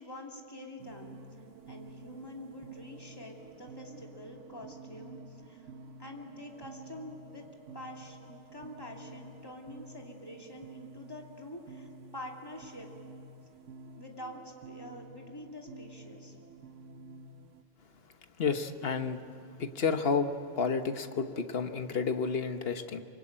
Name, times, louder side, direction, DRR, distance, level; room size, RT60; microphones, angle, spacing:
voice 1, 0.0-5.7 6.0-7.5 7.7-12.9 14.0-16.4, left 1 dB, 20° left, 0 dB, 2.7 m, -46 dB
sound 1, 0.8-17.6, right 3 dB, 85° right, 1.4 m, -50 dB
voice 2, 18.4-19.2 19.6-20.3 20.6-23.0, left 5 dB, 55° left, 8 dB, 1.4 m, -30 dB
25.5 x 24.0 x 8.9 m, 2.5 s
omnidirectional pair, 1.2 m